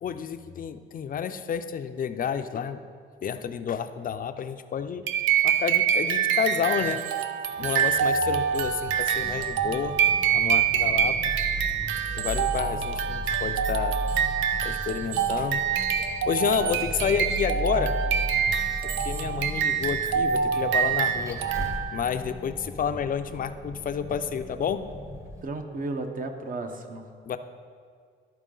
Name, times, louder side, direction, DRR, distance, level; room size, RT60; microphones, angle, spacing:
voice 1, 0.0-2.8 3.2-5.0 5.4-7.0 7.6-9.9 10.2-11.3 12.1-14.0 14.6-15.6 16.3-17.9 18.8-21.4 21.9-24.9 27.3-27.4, left 7 dB, 45° left, 10 dB, 0.5 m, -30 dB
sound 1, 5.1-22.1, right 8 dB, 75° right, 0.6 m, -26 dB
Vehicle, 8.5-25.4, equal, 15° right, 0.9 m, -36 dB
voice 2, 25.4-27.1, right 2 dB, 45° right, 6 dB, 0.9 m, -33 dB
12.5 x 4.6 x 3.8 m, 2.1 s
cardioid pair, 90°, 20 cm